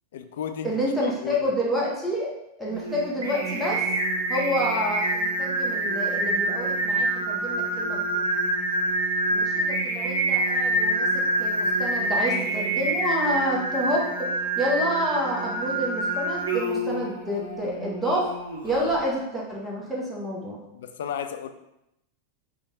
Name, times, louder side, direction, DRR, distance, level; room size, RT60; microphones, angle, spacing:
voice 1, 0.1-1.4 20.7-21.5, left 8 dB, 60° left, 8 dB, 0.3 m, -34 dB
voice 2, 0.6-2.3 2.6-3.8 4.3-8.3 9.3-11.1 11.4-14.3 14.6-18.3 18.6-20.6, equal, ahead, -5 dB, 0.9 m, -28 dB
Singing, 2.7-19.0, right 1 dB, 65° right, 0.6 m, -26 dB
3.6 x 2.3 x 3.7 m, 0.85 s
figure-of-eight pair, 90°, 0 cm